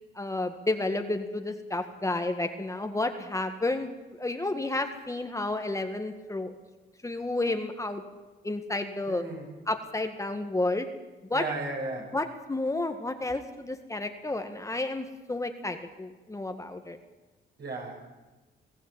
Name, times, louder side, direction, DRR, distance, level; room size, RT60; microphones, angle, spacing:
voice 1, 0.2-6.5 7.0-8.0 8.4-9.2 9.7-10.9 11.3-11.4 12.1-17.0, left 2 dB, 15° left, 6 dB, 1.8 m, -31 dB
voice 2, 9.1-9.5 11.3-12.2 17.6-18.0, right 2 dB, 55° right, 1 dB, 7.3 m, -35 dB
21.5 x 15.5 x 9.1 m, 1.2 s
cardioid pair, 90°, 20 cm